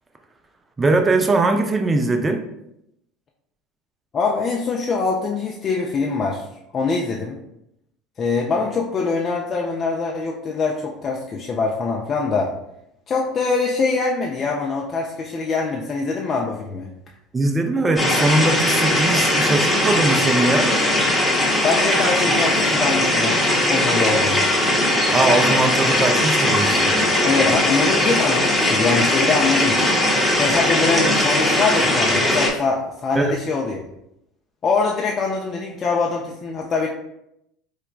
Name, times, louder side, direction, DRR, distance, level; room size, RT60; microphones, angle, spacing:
voice 1, 0.8-2.5 17.3-20.7 25.1-26.9 33.1-33.4, right 2 dB, 20° right, 5 dB, 0.5 m, -20 dB
voice 2, 4.1-6.4 6.7-7.4 8.2-12.5 13.1-16.9 21.6-23.4 23.7-24.5 27.2-29.8 30.4-33.8 34.6-36.9, left 4 dB, 40° left, -1 dB, 0.4 m, -23 dB
sound 1, 18.0-32.5, left 1 dB, 10° left, 0.8 m, -19 dB
4.7 x 2.1 x 2.2 m, 0.81 s
hypercardioid pair, 70°, 0 cm